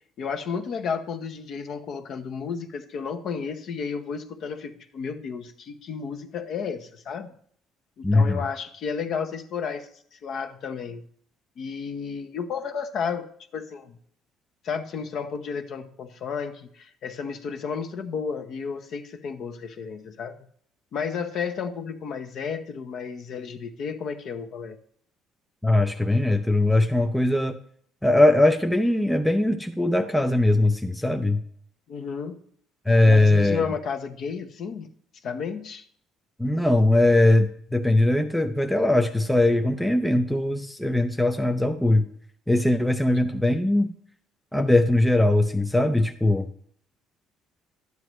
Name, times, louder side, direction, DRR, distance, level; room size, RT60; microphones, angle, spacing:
voice 1, 0.2-7.3 8.0-11.0 11.6-13.3 13.5-14.0 14.6-20.4 20.9-24.8 31.9-32.5 33.1-34.9 35.2-35.8, left 6 dB, 45° left, 7 dB, 0.9 m, -32 dB
voice 2, 8.0-8.4 25.6-27.6 28.0-31.4 32.9-33.7 36.4-42.1 42.5-43.9 44.5-46.5, left 1 dB, 5° left, 5 dB, 0.5 m, -20 dB
12.0 x 9.4 x 3.1 m, 0.62 s
cardioid pair, 170°, 0 cm